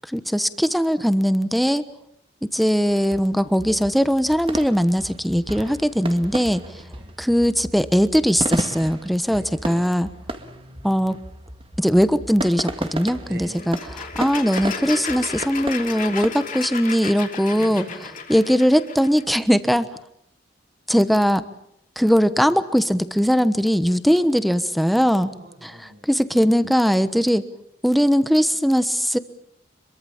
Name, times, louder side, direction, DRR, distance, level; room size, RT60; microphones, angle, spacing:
voice 1, 0.1-1.8 2.5-6.6 7.2-10.1 10.8-11.2 11.8-13.8 14.1-17.8 18.3-19.9 20.9-21.4 22.0-25.3 25.6-25.7 26.1-27.5 27.8-29.2, equal, ahead, 12 dB, 1.1 m, -20 dB
sound 1, 2.9-16.3, right 1 dB, 30° right, 1.9 m, -34 dB
voice 2, 6.7-7.2 9.2-10.0 10.4-11.2 13.2-13.6 17.5-18.1 25.2-26.1, right 1 dB, 65° right, 4 dB, 7.3 m, -43 dB
sound 2, 13.5-19.2, left 5 dB, 50° left, 3.0 m, -33 dB
25.5 x 23.0 x 7.2 m, 0.75 s
head